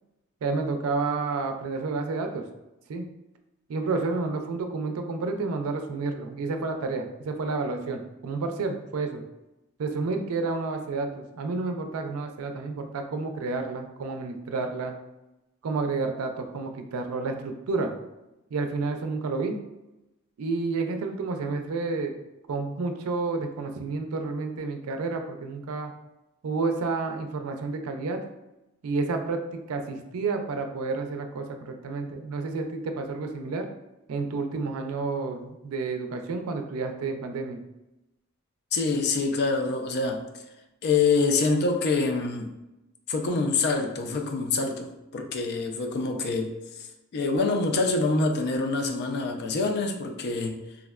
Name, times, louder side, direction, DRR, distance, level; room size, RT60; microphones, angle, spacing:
voice 1, 0.4-2.5 2.9-3.0 3.7-9.2 9.8-14.9 15.6-17.9 18.5-19.6 20.4-22.2 22.5-25.9 26.4-28.2 28.8-33.7 34.1-37.6, right 3 dB, 85° right, 5 dB, 0.4 m, -30 dB
voice 2, 38.7-40.3 40.8-42.5 43.1-46.9 47.1-50.6, left 3 dB, 50° left, 5 dB, 0.3 m, -26 dB
3.5 x 2.1 x 2.3 m, 0.95 s
head